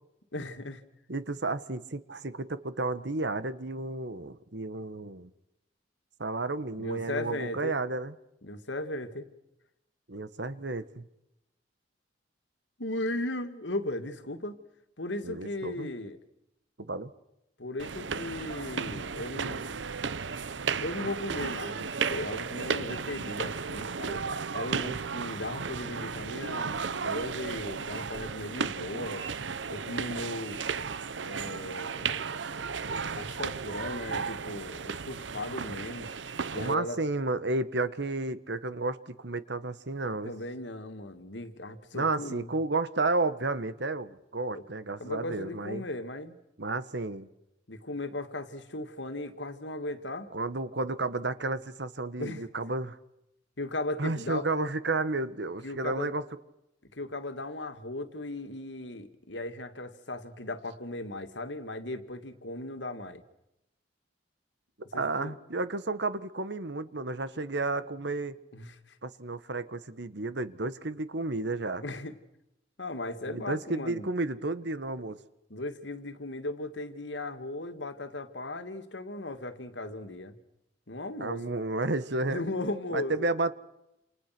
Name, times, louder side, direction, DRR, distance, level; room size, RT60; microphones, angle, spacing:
voice 1, 0.3-0.8 6.8-7.8 8.4-9.3 12.8-14.6 15.0-16.2 17.6-19.7 20.8-24.2 24.5-29.3 29.7-30.6 31.2-32.2 33.2-36.1 36.5-37.0 40.2-42.6 44.5-44.6 45.0-46.4 47.7-50.3 52.2-52.5 53.6-54.5 55.6-56.1 56.9-63.2 64.9-65.3 68.5-69.0 71.8-72.1 72.8-74.1 75.5-80.4 80.9-81.5 82.2-83.3, left 1 dB, 75° left, 8 dB, 2.4 m, -37 dB
voice 2, 1.1-5.3 6.2-8.1 10.1-11.1 15.2-15.9 16.8-17.1 36.5-40.3 41.9-45.8 46.6-47.3 50.3-53.0 54.0-56.2 64.9-68.4 69.0-71.8 73.3-75.2 81.2-82.4 82.9-83.5, right 2 dB, 65° right, 14 dB, 1.5 m, -32 dB
sound 1, 17.8-36.7, right 5 dB, 80° right, 0.9 m, -34 dB
29.0 x 28.5 x 6.2 m, 0.88 s
head